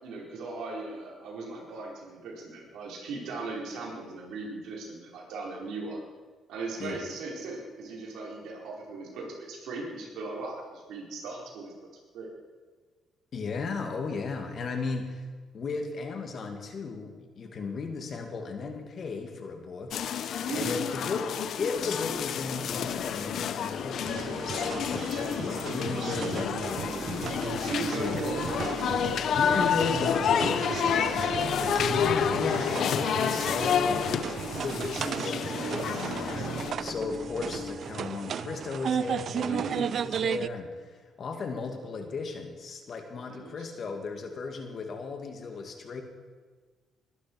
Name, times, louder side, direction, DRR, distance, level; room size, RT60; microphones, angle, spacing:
voice 1, 0.0-6.0 6.5-11.7 12.1-12.3 20.5-20.8 26.0-26.3 27.6-28.8 30.5-31.6 36.6-37.0 39.4-39.9 43.3-43.7, right 3 dB, 85° right, -2 dB, 4.6 m, -38 dB
voice 2, 13.3-15.2 15.5-20.0 20.5-21.3 21.6-27.1 28.0-28.2 29.3-30.7 31.1-31.3 31.9-34.1 34.6-36.3 36.8-46.0, left 4 dB, 55° left, 4 dB, 2.3 m, -35 dB
sound 1, 19.9-36.7, left 8 dB, 70° left, 0.8 m, -30 dB
sound 2, 21.8-37.8, left 4 dB, 30° left, 1.2 m, -42 dB
sound 3, 24.0-40.5, right 8 dB, 60° right, 0.4 m, -35 dB
21.5 x 11.5 x 4.7 m, 1.4 s
cardioid pair, 90°, 0 cm